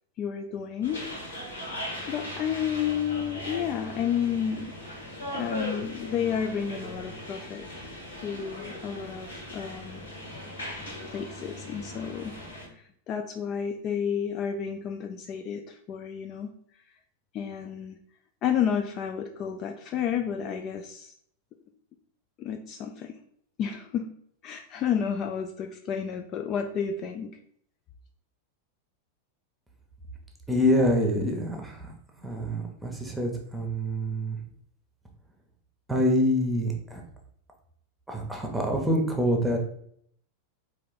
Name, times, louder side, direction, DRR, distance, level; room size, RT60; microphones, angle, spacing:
voice 1, 0.2-1.0 1.3-1.7 2.1-4.7 5.3-7.9 8.2-10.0 11.1-12.4 12.8-16.5 17.3-18.0 18.4-21.1 22.4-23.2 23.6-24.1 24.4-27.3, left 8 dB, 35° left, 5 dB, 0.3 m, -31 dB
sound 1, 0.8-12.7, left 1 dB, 70° left, 1.4 m, -39 dB
voice 2, 30.5-31.8 32.2-34.4 35.9-37.0 38.1-39.6, equal, 5° right, 1 dB, 0.9 m, -26 dB
4.2 x 2.7 x 3.9 m, 0.66 s
figure-of-eight pair, 90°, 0 cm